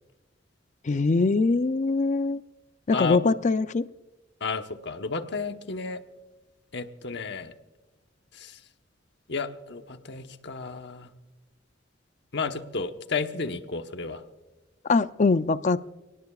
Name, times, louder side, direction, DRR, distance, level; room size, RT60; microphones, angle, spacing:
voice 1, 0.8-2.4 2.9-3.8 14.9-15.9, left 3 dB, 40° left, 13 dB, 0.5 m, -23 dB
voice 2, 4.4-6.0 6.7-7.5 8.3-8.6 9.3-11.1 12.3-14.2, left 4 dB, 65° left, 7 dB, 1.1 m, -32 dB
29.5 x 18.5 x 2.4 m, 1.1 s
head